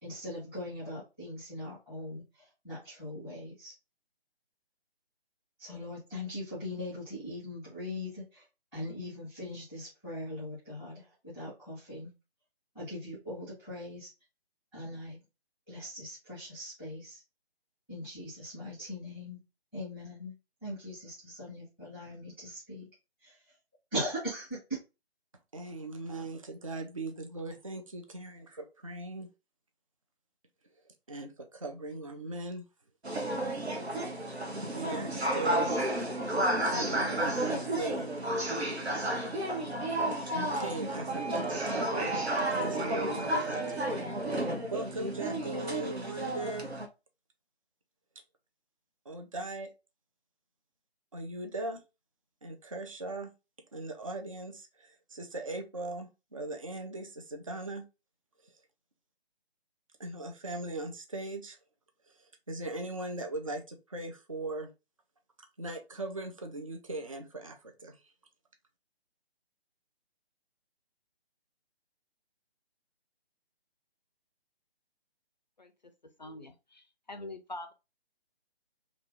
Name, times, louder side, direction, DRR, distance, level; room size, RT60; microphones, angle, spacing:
voice 1, 0.0-3.7 5.6-8.4 8.7-12.1 12.7-14.1 14.7-15.2 15.7-17.2 17.9-19.4 19.7-20.3 20.6-22.9 23.2-23.4 23.9-24.6, left 1 dB, 5° right, 1.0 m, -40 dB
voice 2, 25.5-29.3 31.1-32.6 34.7-35.8 36.6-38.1 40.3-42.1 42.4-44.1 44.7-46.7 49.1-49.7 51.1-51.8 52.4-53.3 53.7-57.8 60.0-61.6 62.2-64.7 65.6-68.0, right 2 dB, 35° right, 0.4 m, -39 dB
sound 1, 33.0-46.9, right 1 dB, 80° right, 1.0 m, -32 dB
voice 3, 76.2-77.7, left 2 dB, 45° left, 0.4 m, -44 dB
2.9 x 2.6 x 3.5 m
figure-of-eight pair, 150°, 31 cm